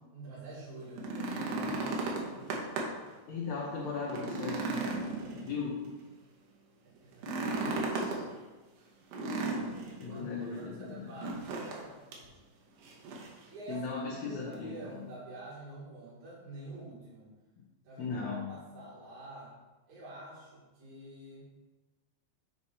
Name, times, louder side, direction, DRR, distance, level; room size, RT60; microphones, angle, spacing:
voice 1, 0.1-2.6 4.8-5.5 6.8-8.3 9.9-12.0 13.5-13.9 14.2-17.3 17.8-19.6 19.9-21.5, right 2 dB, 60° right, -8 dB, 3.2 m, -47 dB
sound 1, 0.8-3.1 3.5-3.6 4.0-5.9 7.1-8.2 9.1-10.0 11.2-11.8 12.1-12.3 12.8-13.4 14.5-14.6, right 3 dB, 75° right, 2.4 m, -35 dB
voice 2, 3.3-4.8 5.4-5.8 7.6-7.8 10.0-11.1 13.7-15.0 18.0-18.5, left 4 dB, 70° left, -4 dB, 1.8 m, -37 dB
8.5 x 3.0 x 4.2 m, 1.2 s
omnidirectional pair, 3.9 m